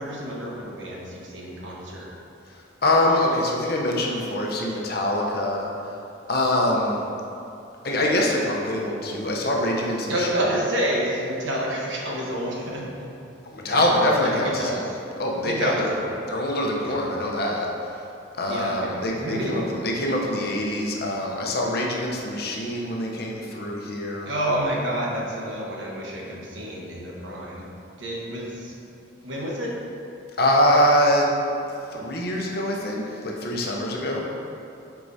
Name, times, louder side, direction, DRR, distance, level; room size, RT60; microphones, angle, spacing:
voice 1, 0.0-2.1 10.1-13.1 13.7-13.8 14.4-14.9 15.4-16.1 16.8-17.0 18.5-19.7 24.3-27.7 28.0-28.8 29.2-29.8, equal, 80° right, -3 dB, 1.1 m, -29 dB
voice 2, 2.5-6.0 6.3-7.0 7.8-10.3 13.5-14.9 15.2-15.9 16.3-18.0 18.4-24.3 30.4-31.3 31.7-34.2, left 1 dB, 55° left, -1 dB, 0.8 m, -24 dB
8.2 x 4.7 x 2.7 m, 2.7 s
head